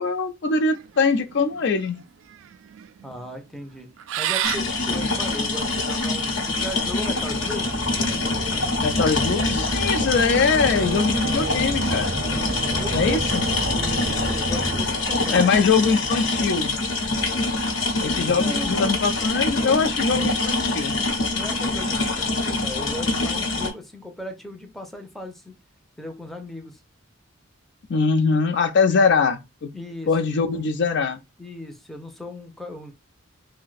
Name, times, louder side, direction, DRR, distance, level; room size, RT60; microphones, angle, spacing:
voice 1, 0.0-2.0 8.8-12.2 12.9-13.4 15.3-16.7 18.0-21.0 27.9-29.7 30.1-31.2, left 4 dB, 60° left, 0.4 m, -22 dB
sound 1, 0.7-6.5, right 11 dB, 80° right, 0.3 m, -32 dB
voice 2, 3.0-3.9 4.2-7.8 12.8-13.4 13.7-15.5 18.3-19.0 21.3-25.5 26.0-26.8 29.7-30.1 31.4-32.9, left 1 dB, ahead, 0.5 m, -37 dB
sound 2, 4.4-23.7, left 3 dB, 80° left, 0.9 m, -25 dB
sound 3, 7.0-15.5, right 2 dB, 45° right, 0.7 m, -31 dB
2.6 x 2.1 x 3.9 m
head